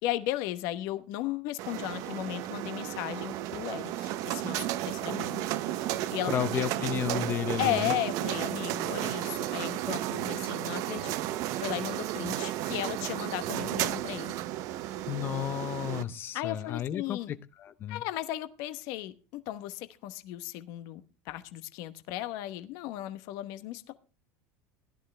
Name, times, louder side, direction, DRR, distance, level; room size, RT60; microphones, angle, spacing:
voice 1, 0.0-6.9 7.6-14.3 16.3-17.3 17.9-23.9, left 14 dB, 55° left, 11 dB, 1.0 m, -36 dB
sound 1, 1.6-16.0, right 14 dB, 50° right, 0.7 m, -33 dB
voice 2, 6.3-7.9 15.1-18.0, left 11 dB, 30° left, 13 dB, 0.6 m, -33 dB
16.5 x 11.5 x 3.3 m, 0.33 s
cardioid pair, 155°, 7 cm